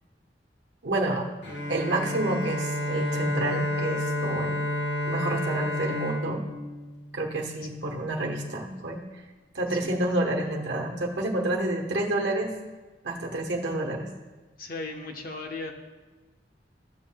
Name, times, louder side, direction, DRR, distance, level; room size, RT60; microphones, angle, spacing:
voice 1, 0.8-1.3 1.7-4.6 5.1-6.4 7.1-9.0 9.5-12.5 13.0-14.1, right 1 dB, 80° right, 0 dB, 1.0 m, -29 dB
Bowed string instrument, 1.4-7.4, equal, 85° left, 1.7 m, -30 dB
voice 2, 14.6-15.7, left 3 dB, 55° left, 3 dB, 1.0 m, -36 dB
14.0 x 7.3 x 2.2 m, 1.2 s
head